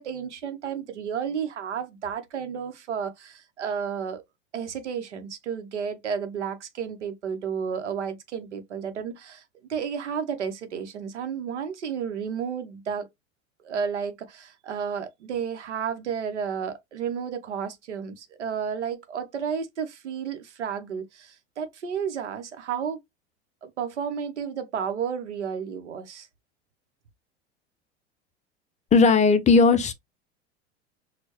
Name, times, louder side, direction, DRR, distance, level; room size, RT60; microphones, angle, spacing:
voice 1, 0.0-4.2 4.5-9.4 9.7-13.1 13.6-23.0 23.6-26.3, right 7 dB, 85° right, 0.8 m, -32 dB
voice 2, 28.9-29.9, left 4 dB, 20° left, 0.5 m, -17 dB
4.3 x 2.2 x 2.9 m
hypercardioid pair, 85°, 34 cm